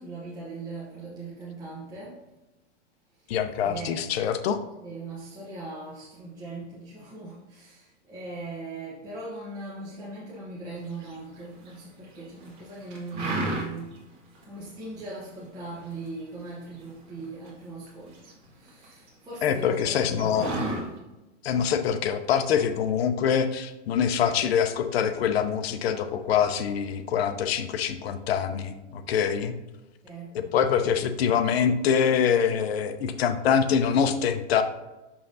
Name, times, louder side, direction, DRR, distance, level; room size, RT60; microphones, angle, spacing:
voice 1, 0.0-2.2 3.2-3.3 3.6-4.0 4.8-14.0 14.5-20.5 21.1-21.2 30.0-30.4, right 3 dB, 10° right, -7 dB, 1.1 m, -40 dB
voice 2, 3.3-4.6 19.4-20.5 21.4-29.5 30.3-34.6, left 7 dB, 60° left, 9 dB, 0.7 m, -24 dB
sound 1, 11.0-11.8 12.2-12.6 12.9-14.0 14.3-14.4 14.8-15.3 15.7-17.6 17.9-19.1 19.4-19.5 19.7-20.8, right 1 dB, 40° right, 1.9 m, -32 dB
6.7 x 5.6 x 2.7 m, 1.0 s
supercardioid pair, 160°, 35 cm